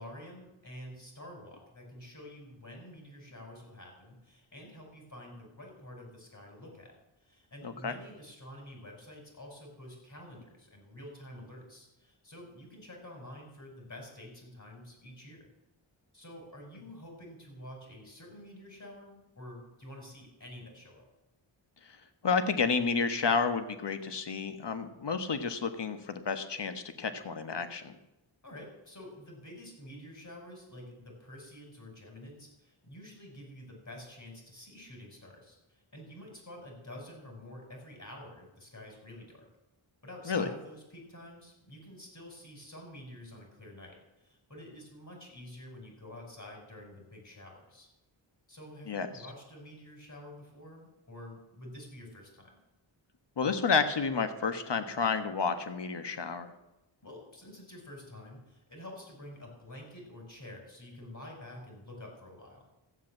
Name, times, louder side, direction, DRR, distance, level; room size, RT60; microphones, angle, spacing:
voice 1, 0.0-15.5 16.1-21.1 28.4-39.5 40.0-47.9 48.5-52.6 57.0-62.7, left 1 dB, 40° left, 1 dB, 5.8 m, -48 dB
voice 2, 22.2-28.0 40.3-40.4 48.9-49.1 53.4-56.5, left 5 dB, 60° left, 9 dB, 1.4 m, -30 dB
14.5 x 8.1 x 7.3 m, 0.95 s
cardioid pair, 55°, 47 cm